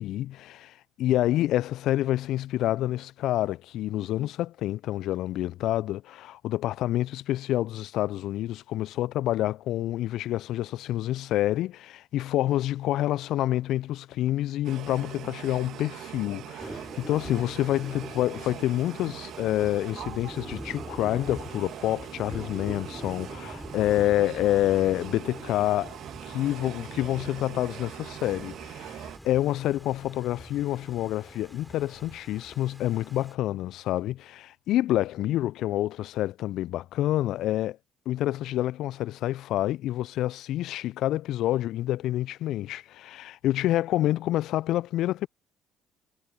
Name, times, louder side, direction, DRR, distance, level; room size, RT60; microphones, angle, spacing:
voice 1, 0.0-26.0 26.2-37.8 38.0-45.3, left 14 dB, 60° left, 1.0 m, -28 dB
sound 1, 14.6-29.2, right 12 dB, 55° right, 1.9 m, -42 dB
Thunder / Rain, 16.6-33.3, equal, ahead, 6.0 m, -44 dB
figure-of-eight pair, 50°, 0 cm